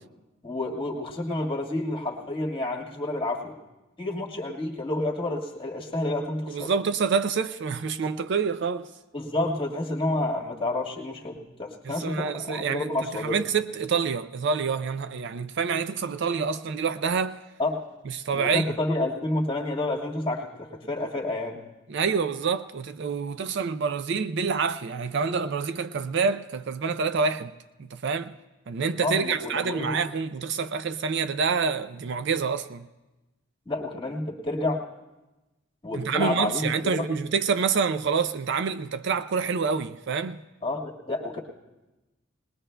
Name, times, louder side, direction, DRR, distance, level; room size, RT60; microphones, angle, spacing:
voice 1, 0.4-3.6 4.0-6.7 9.1-13.4 17.6-17.8 18.3-21.6 29.0-30.0 33.6-34.8 35.8-37.1 40.6-41.4, left 2 dB, 25° left, 1.6 m, -29 dB
voice 2, 6.5-8.9 11.8-17.4 18.1-18.8 21.9-27.5 27.8-28.3 28.7-32.9 35.9-40.4, right 5 dB, 60° right, 0.4 m, -27 dB
20.5 x 20.0 x 2.2 m
head